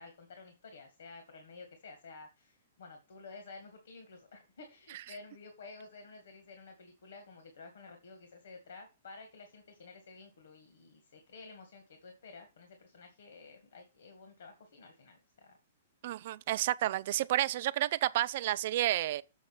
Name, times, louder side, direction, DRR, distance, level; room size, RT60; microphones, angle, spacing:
voice 1, 0.0-15.6, left 3 dB, 65° left, 1.9 m, -52 dB
voice 2, 16.0-19.2, right 14 dB, 50° right, 0.4 m, -30 dB
7.4 x 5.1 x 6.0 m
figure-of-eight pair, 115°, 0 cm